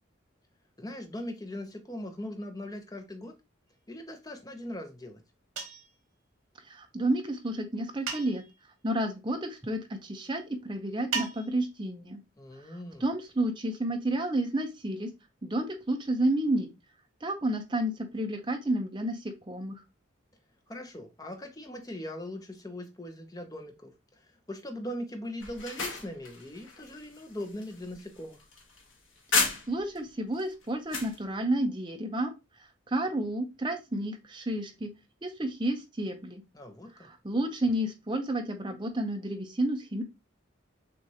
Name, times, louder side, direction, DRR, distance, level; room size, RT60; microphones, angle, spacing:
voice 1, 0.8-3.3 3.9-5.2 12.4-13.1 20.7-23.9 24.2-28.4 36.5-37.1, left 1 dB, 20° left, 0.7 m, -40 dB
sound 1, 5.6-6.0 8.1-8.6 11.1-11.7, right 5 dB, 85° right, 1.1 m, -35 dB
voice 2, 6.7-8.4 8.8-12.2 12.7-15.1 15.4-16.7 17.2-19.8 29.5-32.3 32.9-34.9 35.2-36.4 37.0-40.0, right 1 dB, 25° right, 0.6 m, -31 dB
sound 2, 25.4-30.0 30.4-31.2, left 4 dB, 75° left, 1.2 m, -33 dB
6.0 x 2.5 x 2.8 m
head